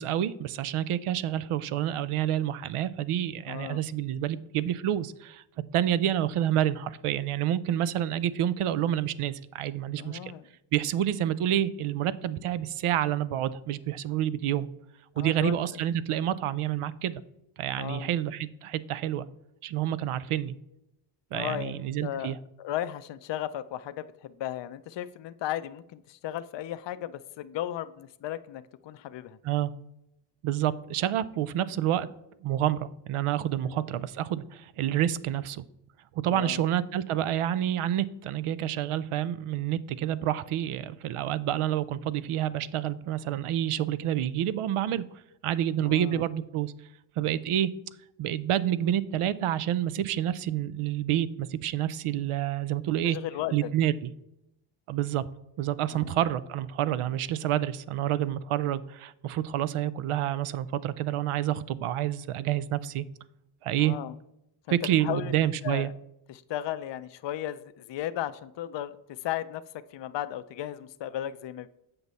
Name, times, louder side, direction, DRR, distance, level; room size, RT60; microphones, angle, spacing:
voice 1, 0.0-5.4 5.7-10.3 10.7-14.7 15.2-17.2 17.6-19.3 19.6-20.5 21.3-22.4 29.4-29.7 30.4-32.1 32.4-35.6 36.2-45.0 45.4-46.7 47.2-47.7 48.2-53.2 53.5-54.1 54.9-55.3 55.6-63.0 63.6-63.9 64.7-65.9, right 11 dB, 80° right, 16 dB, 0.6 m, -28 dB
voice 2, 3.5-3.8 10.0-10.5 15.2-15.6 17.8-18.1 21.3-29.4 33.6-34.0 36.3-36.6 45.8-46.2 53.0-53.7 55.8-56.2 63.8-64.1 64.8-65.9 66.3-69.6 69.9-71.7, left 12 dB, 60° left, 12 dB, 0.5 m, -35 dB
7.9 x 5.3 x 4.1 m, 0.83 s
cardioid pair, 70°, 50 cm